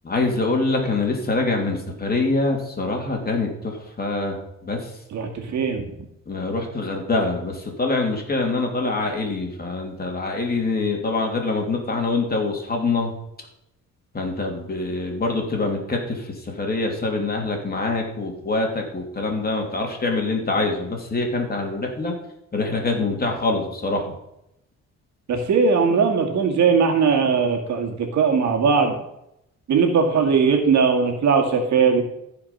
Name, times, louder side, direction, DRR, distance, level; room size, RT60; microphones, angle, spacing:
voice 1, 0.0-4.4 4.6-4.8 6.3-13.1 14.1-16.2 16.6-22.1 22.5-24.1, left 3 dB, 30° left, 1 dB, 2.9 m, -24 dB
voice 2, 5.1-5.9 25.3-29.0 29.7-32.0, right 5 dB, 65° right, 3 dB, 2.1 m, -19 dB
14.5 x 5.2 x 5.6 m, 0.81 s
cardioid pair, 90°, 30 cm